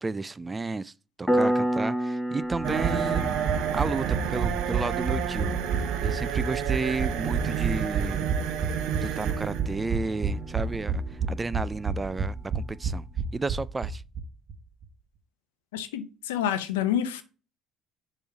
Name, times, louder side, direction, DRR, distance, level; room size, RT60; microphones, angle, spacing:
voice 1, 0.0-0.9 1.2-3.3 3.7-5.5 6.0-8.3 9.0-13.1 13.3-14.0, right 3 dB, 20° right, 0.3 m, -32 dB
Piano, 1.3-11.7, equal, 5° left, 1.3 m, -33 dB
sound 1, 2.5-14.2 14.5-14.6 14.8-14.9, right 6 dB, 40° right, 0.9 m, -30 dB
sound 2, 2.6-12.2, right 9 dB, 70° right, 0.7 m, -32 dB
voice 2, 15.7-17.2, left 10 dB, 90° left, 0.7 m, -28 dB
6.7 x 3.1 x 5.4 m
hypercardioid pair, 70°, 0 cm